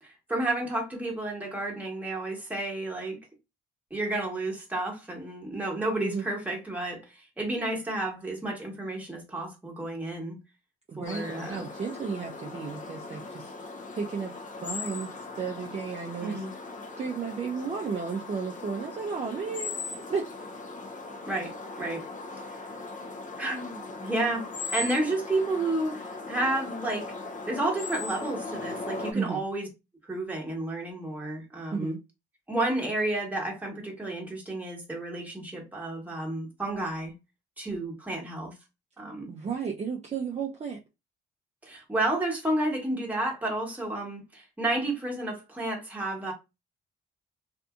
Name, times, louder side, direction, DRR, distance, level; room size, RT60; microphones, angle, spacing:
voice 1, 0.0-3.2 3.9-10.4 11.0-11.7 16.2-16.5 21.3-22.0 23.4-27.1 27.5-29.7 30.1-31.9 32.5-37.1 37.6-38.5 39.0-39.3 41.6-46.3, right 2 dB, 10° right, 1.2 m, -31 dB
voice 2, 10.9-13.7 14.0-14.4 14.6-16.4 17.0-19.7 20.1-20.3 29.1-29.4 31.7-32.0 39.3-40.8, right 5 dB, 35° right, 0.5 m, -33 dB
sound 1, 11.0-29.1, left 3 dB, 40° left, 0.6 m, -39 dB
2.6 x 2.5 x 2.4 m
cardioid pair, 90°, 20 cm